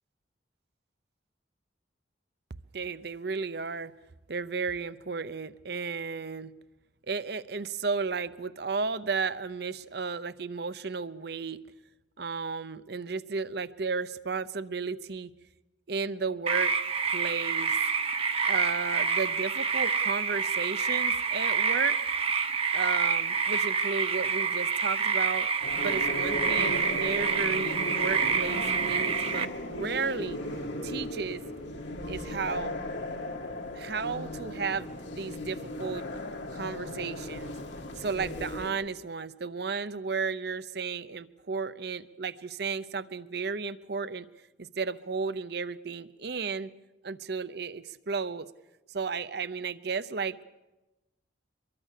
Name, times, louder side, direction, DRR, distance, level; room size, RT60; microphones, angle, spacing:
voice 1, 2.7-3.9 4.3-6.5 7.1-11.6 12.2-15.3 15.9-16.8 17.0-17.8 18.5-22.0 22.7-30.4 30.8-31.4 32.1-32.8 33.7-36.1 36.5-37.5 38.0-44.3 44.6-46.7 47.0-48.5 48.9-50.6, right 4 dB, 60° right, 15 dB, 0.8 m, -33 dB
sound 1, 16.5-29.5, right 6 dB, 30° right, 0.9 m, -27 dB
sound 2, 25.6-38.7, left 1 dB, 75° left, 2.3 m, -37 dB
24.5 x 22.5 x 6.6 m, 1.0 s
head